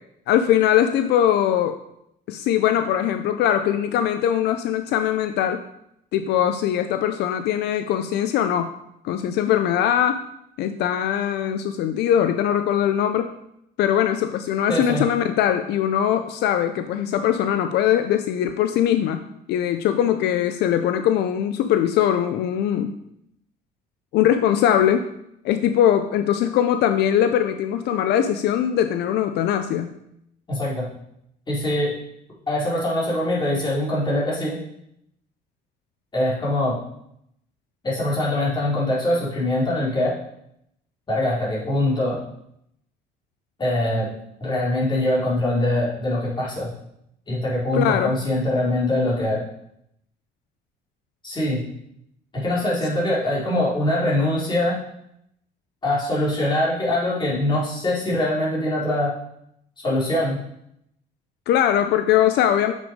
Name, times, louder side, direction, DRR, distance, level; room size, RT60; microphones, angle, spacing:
voice 1, 0.3-1.8 2.3-5.6 6.1-8.7 9.0-10.2 10.6-13.4 13.8-23.0 24.1-25.1 25.4-29.9 47.7-48.1 61.5-62.7, left 10 dB, 80° left, 8 dB, 0.6 m, -21 dB
voice 2, 14.7-15.1 30.5-30.8 31.5-31.9 32.5-34.6 36.1-36.8 37.8-40.1 41.1-42.2 43.6-44.1 44.4-46.7 47.3-49.4 51.2-51.6 52.3-54.8 55.8-59.1 59.8-60.4, left 1 dB, 25° left, -6 dB, 3.8 m, -23 dB
7.0 x 6.3 x 5.1 m, 0.77 s
cardioid pair, 110°, 17 cm